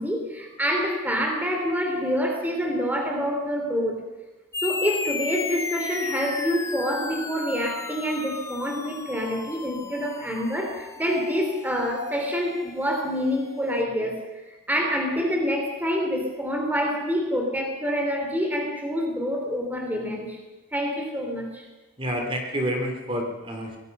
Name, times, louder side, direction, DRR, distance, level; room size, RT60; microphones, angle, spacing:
voice 1, 0.0-4.0 4.6-20.4 20.7-21.7, equal, 10° right, 2 dB, 3.3 m, -27 dB
sound 1, 4.5-13.4, left 4 dB, 15° left, 0.6 m, -35 dB
voice 2, 22.0-23.8, equal, 25° right, 2 dB, 3.3 m, -28 dB
25.0 x 19.5 x 5.5 m, 1.2 s
head